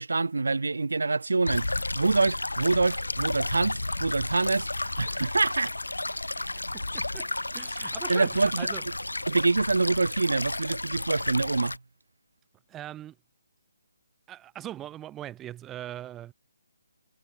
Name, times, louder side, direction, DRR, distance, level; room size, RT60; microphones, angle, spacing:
voice 1, 0.0-5.7 8.1-8.7 9.3-11.8, right 3 dB, 70° right, 5.3 m, -26 dB
sound 1, 1.5-11.8, left 2 dB, 85° left, 7.1 m, -32 dB
voice 2, 6.1-7.3 7.5-8.8 12.7-13.2 14.3-16.3, right 12 dB, 15° right, 6.8 m, -41 dB
figure-of-eight pair, 145°, 0 cm